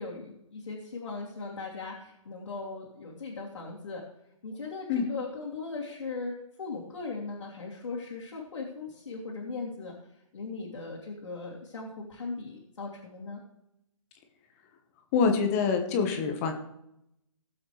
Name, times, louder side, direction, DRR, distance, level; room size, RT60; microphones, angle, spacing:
voice 1, 0.0-4.0 4.4-6.3 6.6-9.9 10.3-13.4, left 3 dB, 65° left, -5 dB, 2.9 m, -38 dB
voice 2, 15.1-16.5, left 5 dB, 25° left, 5 dB, 1.4 m, -25 dB
18.5 x 7.8 x 3.4 m, 0.82 s
hypercardioid pair, 145°, 17 cm